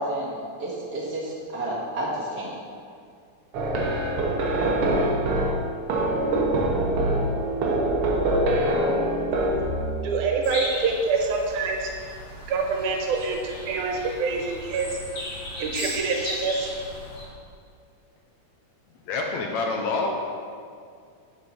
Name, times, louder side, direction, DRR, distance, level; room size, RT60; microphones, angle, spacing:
voice 1, 0.0-2.5, right 1 dB, 40° right, -6 dB, 1.7 m, -30 dB
sound 1, 3.5-10.1, right 1 dB, 65° right, 1.6 m, -24 dB
voice 2, 10.0-11.9 12.5-15.0 15.6-16.7, right 4 dB, 85° right, 2 dB, 2.4 m, -26 dB
sound 2, 10.4-17.2, left 1 dB, 60° left, 2.9 m, -36 dB
voice 3, 19.1-20.1, left 3 dB, 75° left, 1 dB, 2.0 m, -26 dB
7.7 x 6.4 x 5.3 m, 2.2 s
omnidirectional pair, 3.5 m